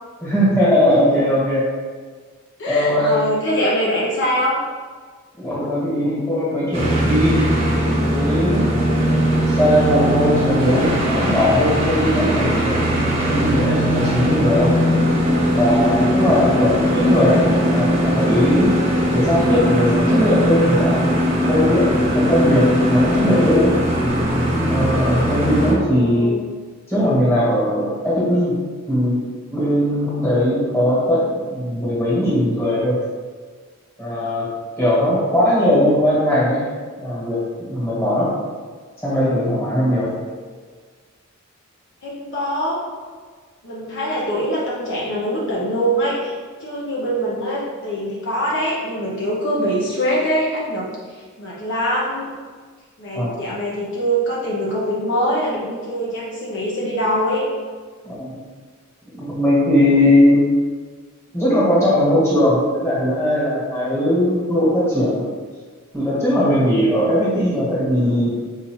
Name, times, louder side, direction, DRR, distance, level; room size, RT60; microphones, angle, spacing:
voice 1, 0.2-1.6 2.7-3.1 5.4-7.4 8.0-8.7 9.5-12.8 13.3-14.8 15.5-18.7 19.1-21.1 21.5-23.7 24.7-26.3 26.9-28.6 28.9-29.2 29.5-33.0 34.0-34.5 34.8-36.6 37.0-38.3 39.0-40.1 53.1-53.3 58.0-58.3 59.0-60.5 61.3-65.2 65.9-68.3, left 1 dB, 10° left, -8 dB, 1.5 m, -19 dB
voice 2, 2.6-4.6 25.8-26.4 40.4-40.5 42.0-42.8 43.6-46.3 46.6-50.9 51.4-52.3 53.0-57.4, equal, 60° left, -5 dB, 0.8 m, -23 dB
sound 1, 6.7-25.7, equal, 30° right, 0.8 m, -19 dB
4.9 x 2.8 x 3.1 m, 1.5 s
head